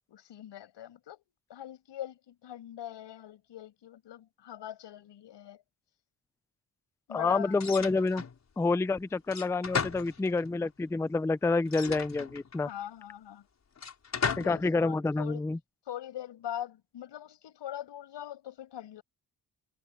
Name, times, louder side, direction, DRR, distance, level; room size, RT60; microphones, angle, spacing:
voice 1, 0.1-1.2 1.5-5.6 7.1-7.7 12.7-13.5 14.2-15.5 15.9-19.0, left 11 dB, 90° left, 5.9 m, -42 dB
voice 2, 7.1-8.2 8.6-12.7 14.4-15.6, left 3 dB, 5° left, 0.4 m, -28 dB
sound 1, 7.6-8.4 9.3-10.6 11.7-12.7 13.8-14.7, left 6 dB, 40° left, 4.7 m, -35 dB
wide cardioid pair, 140°, 41 cm